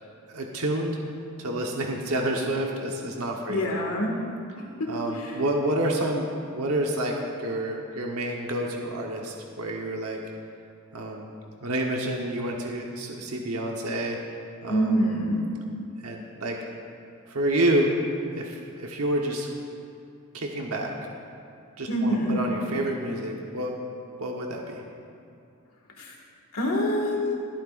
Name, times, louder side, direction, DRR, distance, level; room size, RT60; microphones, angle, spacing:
voice 1, 0.3-1.0 1.4-3.7 4.9-10.2 10.9-11.3 11.6-14.2 14.6-15.1 16.0-16.6 17.3-17.9 18.3-19.5 20.3-20.9 21.8-23.8 24.2-24.8, right 1 dB, 80° right, 0 dB, 1.1 m, -28 dB
voice 2, 3.5-4.1 4.8-4.9 5.2-5.3 14.7-15.4 21.9-22.4 26.0-26.1 26.5-27.3, equal, 75° left, 0 dB, 1.9 m, -25 dB
25.0 x 8.9 x 2.5 m, 2.5 s
head